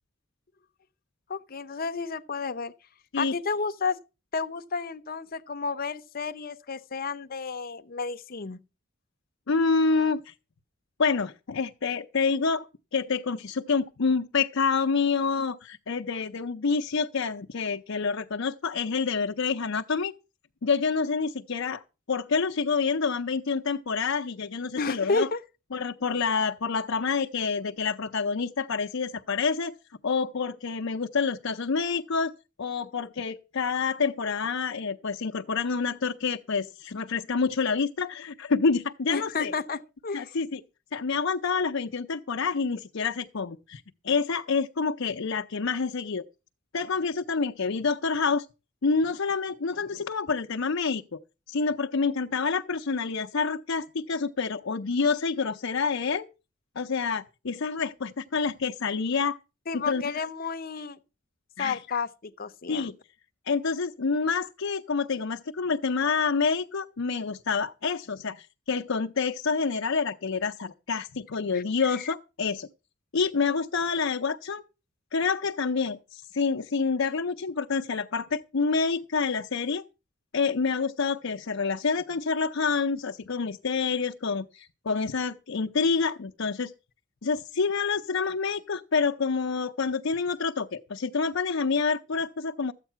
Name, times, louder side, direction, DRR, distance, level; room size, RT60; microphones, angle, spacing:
voice 1, 1.3-2.7 3.2-4.0 4.3-8.6 24.7-25.4 39.1-40.2 59.7-61.0 61.6-62.9 71.5-71.6 71.9-72.1, left 4 dB, 50° left, 0.8 m, -31 dB
voice 2, 9.5-10.3 11.0-12.7 12.9-20.1 20.6-21.8 22.1-25.3 25.7-29.7 30.0-32.3 32.6-39.5 40.1-40.6 40.9-46.2 46.7-48.4 48.8-51.2 51.5-56.3 56.8-59.4 59.7-60.0 61.6-61.8 62.7-63.0 63.5-72.7 73.1-74.6 75.1-79.8 80.3-86.7 87.2-92.7, left 5 dB, 85° left, 0.7 m, -27 dB
13.0 x 8.2 x 5.6 m
head